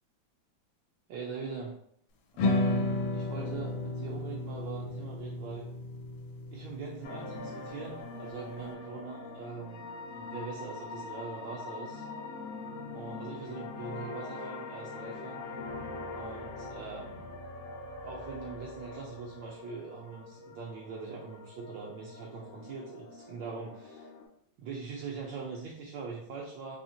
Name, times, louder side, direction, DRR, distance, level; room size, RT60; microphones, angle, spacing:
voice 1, 1.1-1.8 2.3-5.7 6.5-9.9 10.1-12.1 12.9-15.4 16.1-17.3 18.0-24.1 24.6-26.8, right 5 dB, 75° right, -3 dB, 1.2 m, -42 dB
sound 1, 2.4-8.6, left 2 dB, 80° left, 1.3 m, -33 dB
sound 2, 7.0-24.2, left 3 dB, 65° left, 0.8 m, -43 dB
4.2 x 2.8 x 2.7 m, 0.67 s
omnidirectional pair, 2.2 m